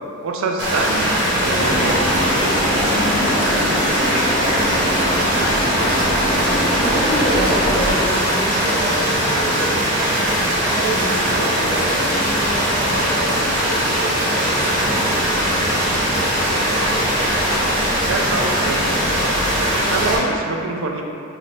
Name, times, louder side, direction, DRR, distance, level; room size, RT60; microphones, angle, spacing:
voice 1, 0.2-1.2 1.4-2.0 18.1-19.0 19.9-21.0, right 3 dB, 75° right, 1 dB, 0.4 m, -24 dB
sound 1, 0.6-20.2, equal, 50° right, 0.9 m, -20 dB
sound 2, 1.3-7.9, equal, 5° right, 0.7 m, -23 dB
voice 2, 6.7-9.9 10.6-14.7, right 1 dB, 50° left, -13 dB, 0.7 m, -28 dB
3.1 x 2.0 x 3.9 m, 2.5 s
head